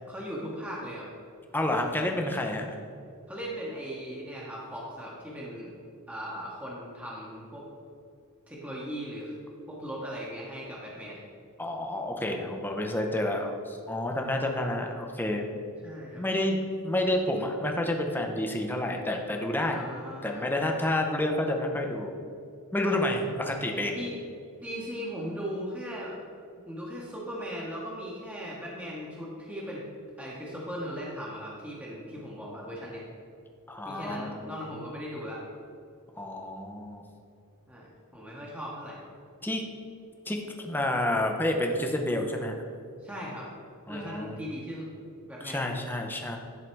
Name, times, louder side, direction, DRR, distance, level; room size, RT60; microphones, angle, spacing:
voice 1, 0.1-1.1 3.3-5.7 6.1-7.6 8.5-9.3 9.7-11.2 15.8-16.2 19.7-20.6 22.8-23.1 23.9-24.1 24.6-26.2 26.7-29.8 30.2-33.0 33.8-35.4 37.7-39.0 43.0-43.5 43.9-44.9 45.3-45.7, equal, 5° right, -5 dB, 1.1 m, -38 dB
voice 2, 1.5-2.7 11.6-15.4 16.2-19.8 20.2-22.1 22.7-24.0 33.7-34.5 36.2-37.0 39.4-39.6 40.3-42.6 43.9-44.4 45.4-46.4, left 1 dB, 10° left, 2 dB, 0.7 m, -29 dB
11.0 x 3.9 x 4.5 m, 2.4 s
head